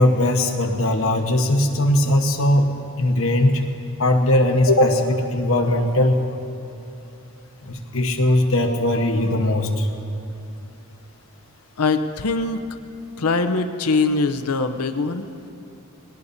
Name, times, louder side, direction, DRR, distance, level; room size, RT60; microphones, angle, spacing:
voice 1, 0.0-3.6 4.0-6.2 7.7-9.9, left 1 dB, 65° left, 3 dB, 1.2 m, -19 dB
voice 2, 11.8-12.6 13.2-15.3, left 3 dB, 85° left, 8 dB, 0.7 m, -22 dB
20.5 x 18.0 x 2.7 m, 2.8 s
head